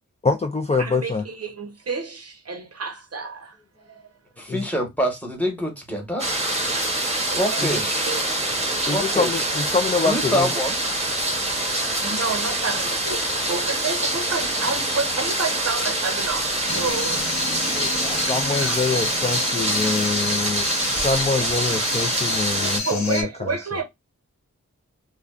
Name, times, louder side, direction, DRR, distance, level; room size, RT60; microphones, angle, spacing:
voice 1, 0.2-1.2 4.5-4.7 7.6-7.8 8.9-10.5 17.8-23.6, left 4 dB, 20° left, 0.4 m, -25 dB
voice 2, 0.8-3.6 3.9-4.0 7.3-8.3 8.7-9.0 10.3-10.4 12.0-17.2 18.2-19.0 21.3-21.5 22.9-23.8, right 4 dB, 55° right, 0.7 m, -30 dB
voice 3, 4.4-6.3 7.3-8.1 8.9-9.4 10.0-10.7, equal, 5° left, 1.1 m, -26 dB
sound 1, 6.2-22.8, right 1 dB, 20° right, 0.8 m, -25 dB
sound 2, 16.7-23.2, left 3 dB, 65° left, 0.8 m, -29 dB
2.4 x 2.2 x 2.3 m
cardioid pair, 45°, 30 cm